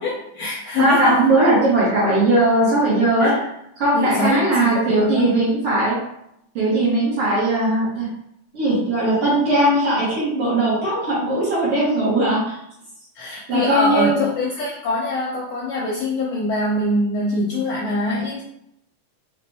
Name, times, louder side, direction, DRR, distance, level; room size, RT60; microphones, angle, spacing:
voice 1, 0.0-1.2 3.2-3.5 3.9-5.3 13.1-18.4, left 2 dB, 75° left, -4 dB, 1.5 m, -24 dB
voice 2, 0.8-3.3 3.8-5.9 6.6-8.1 8.5-12.6 13.3-14.2, right 1 dB, 55° right, -8 dB, 1.8 m, -19 dB
5.2 x 2.7 x 3.4 m, 0.79 s
omnidirectional pair, 3.7 m